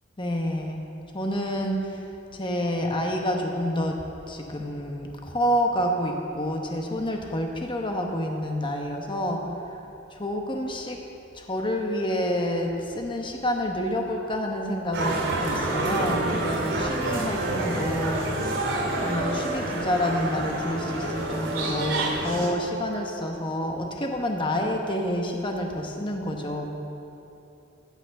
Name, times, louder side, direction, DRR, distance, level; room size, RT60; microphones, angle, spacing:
voice 1, 0.2-0.8 1.1-2.0 2.3-4.0 4.3-9.4 10.1-11.0 11.3-18.5 19.0-26.7, equal, 25° left, 2 dB, 1.0 m, -28 dB
sound 1, 14.9-22.5, right 2 dB, 75° right, 2.7 m, -28 dB
15.0 x 5.9 x 6.8 m, 2.9 s
head